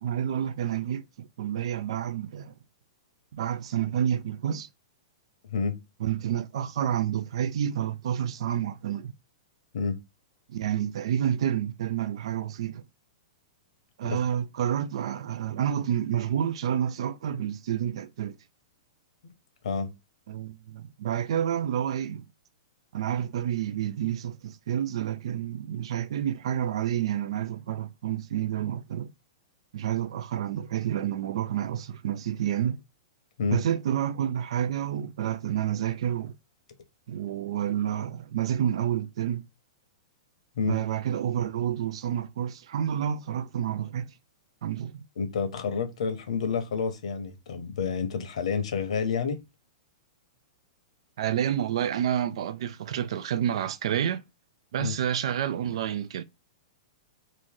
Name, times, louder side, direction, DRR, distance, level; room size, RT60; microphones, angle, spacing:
voice 1, 0.0-2.5 3.3-4.7 6.0-9.1 10.5-12.8 14.0-18.4 20.3-22.2 22.9-29.1 29.7-32.8 33.5-36.4 37.1-39.4 40.7-44.1 44.6-45.0 51.2-54.2 54.7-56.2, right 10 dB, 55° right, 0.4 m, -29 dB
voice 2, 45.2-49.4 54.8-54.9, left 5 dB, 70° left, 1.1 m, -29 dB
3.0 x 2.6 x 3.6 m
supercardioid pair, 175°, 4 cm